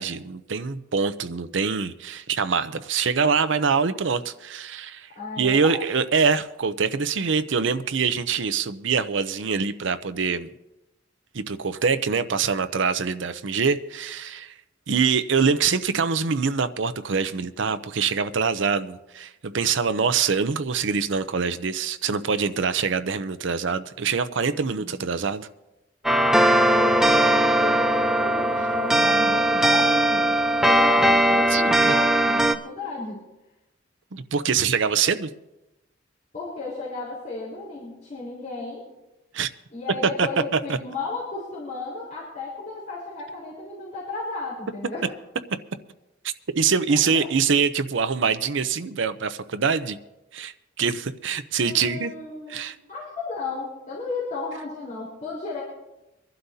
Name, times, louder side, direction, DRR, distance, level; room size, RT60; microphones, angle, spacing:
voice 1, 0.0-5.1 5.4-10.5 11.3-14.5 14.9-25.5 31.5-32.0 34.1-35.3 39.3-39.5 40.2-40.3 46.6-50.0 50.3-52.1 52.5-52.8, right 5 dB, 70° right, 0.6 m, -24 dB
voice 2, 5.1-5.8 24.8-25.0 26.2-33.2 36.3-38.9 39.7-45.2 46.9-47.3 51.6-52.6 52.9-55.6, left 3 dB, 40° left, 4.2 m, -34 dB
sound 1, 26.0-32.5, right 1 dB, 5° right, 0.6 m, -19 dB
25.0 x 11.5 x 2.8 m
head